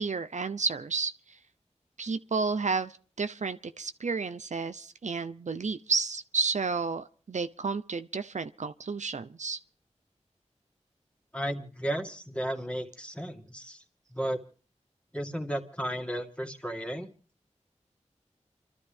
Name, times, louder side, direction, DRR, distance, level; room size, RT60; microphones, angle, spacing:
voice 1, 0.0-1.4 2.0-9.6, right 4 dB, 70° right, 0.7 m, -31 dB
voice 2, 11.3-13.8 14.1-14.4 15.1-17.1, right 1 dB, 10° left, 2.3 m, -34 dB
29.0 x 12.5 x 3.5 m
cardioid pair, 40°, 12 cm